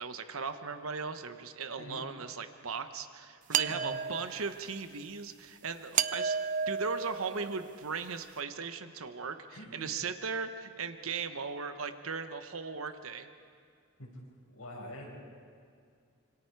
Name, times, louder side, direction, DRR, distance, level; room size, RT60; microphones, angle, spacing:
voice 1, 0.0-6.4 6.7-13.3, right 5 dB, 75° right, 9 dB, 1.1 m, -38 dB
sound 1, 3.5-4.6 5.9-7.8, right 7 dB, 40° right, 0.5 m, -32 dB
voice 2, 9.5-9.9 14.0-14.2 14.5-15.1, left 1 dB, 90° left, -1 dB, 5.4 m, -45 dB
26.5 x 25.0 x 4.7 m, 2.3 s
head